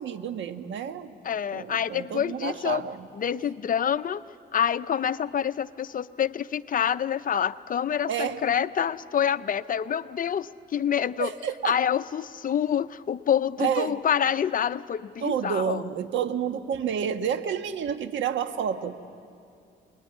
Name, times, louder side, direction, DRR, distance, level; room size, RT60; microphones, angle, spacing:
voice 1, 0.0-1.1 1.5-3.1 8.1-8.4 11.2-11.8 13.6-14.0 15.2-19.0, right 8 dB, 70° right, 8 dB, 1.3 m, -29 dB
voice 2, 1.2-2.8 3.1-4.2 4.5-11.3 11.6-15.8, left 8 dB, 45° left, 13 dB, 0.7 m, -27 dB
25.5 x 21.0 x 9.7 m, 2.4 s
cardioid pair, 90°, 20 cm